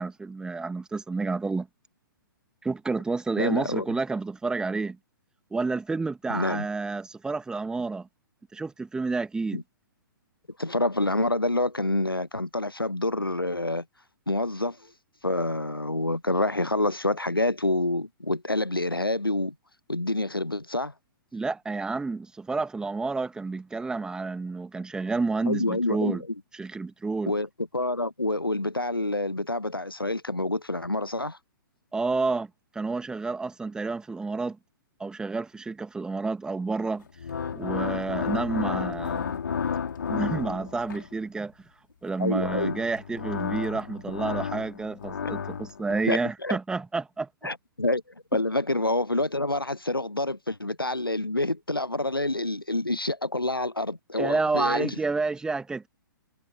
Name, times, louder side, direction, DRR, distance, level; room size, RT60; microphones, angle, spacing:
voice 1, 0.0-1.7 2.6-5.0 5.5-8.1 8.5-9.6 21.3-26.2 26.5-27.3 31.9-34.6 35.0-37.0 37.5-39.4 40.1-41.5 42.0-47.3 48.3-48.4 54.2-55.9, right 3 dB, 5° right, 2.1 m, -30 dB
voice 2, 3.4-3.9 6.3-6.7 9.5-9.6 10.6-13.8 14.3-14.8 15.2-19.5 19.9-20.9 25.5-26.2 27.3-27.5 27.7-31.4 42.2-42.8 46.1-46.6 47.4-48.0 48.3-54.9, left 2 dB, 90° left, 0.7 m, -27 dB
sound 1, 37.1-41.1 42.1-46.1, left 6 dB, 60° left, 3.0 m, -32 dB
figure-of-eight pair, 120°, 12 cm